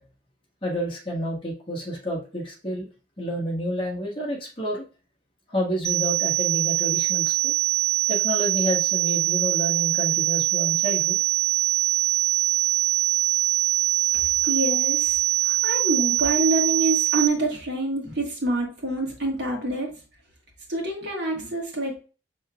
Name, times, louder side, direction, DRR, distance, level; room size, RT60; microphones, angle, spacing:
voice 1, 0.6-2.9 3.2-4.8 5.5-7.5 8.1-11.2, equal, 30° left, -3 dB, 1.4 m, -29 dB
sound 1, 5.8-17.3, right 15 dB, 15° right, 0.3 m, -23 dB
voice 2, 14.1-15.2 15.4-19.9 20.7-22.0, right 2 dB, 70° right, -2 dB, 1.6 m, -26 dB
5.6 x 3.5 x 2.3 m, 0.35 s
head